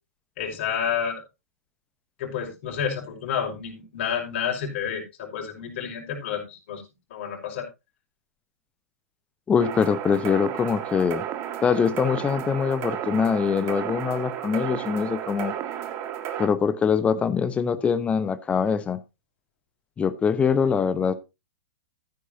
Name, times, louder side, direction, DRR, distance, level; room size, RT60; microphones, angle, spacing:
voice 1, 0.4-1.2 2.2-6.8 7.1-7.7, left 7 dB, 45° left, 5.6 m, -30 dB
voice 2, 9.5-11.2 11.6-15.5 16.4-19.0 20.0-21.1, left 6 dB, 15° left, 1.1 m, -23 dB
sound 1, 9.6-16.5, right 10 dB, 30° right, 2.0 m, -33 dB
14.5 x 9.9 x 2.9 m
figure-of-eight pair, 110°, 8 cm